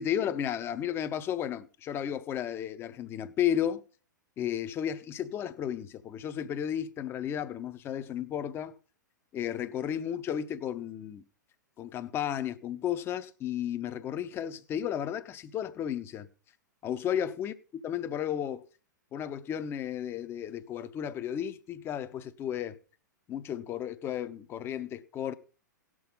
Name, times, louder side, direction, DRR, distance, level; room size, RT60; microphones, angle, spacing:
voice 1, 0.0-3.8 4.4-8.7 9.3-11.2 11.8-16.3 16.8-18.6 19.1-22.8 23.3-25.3, left 10 dB, 25° left, 0.7 m, -33 dB
18.0 x 6.2 x 3.8 m
figure-of-eight pair, 100°, 10 cm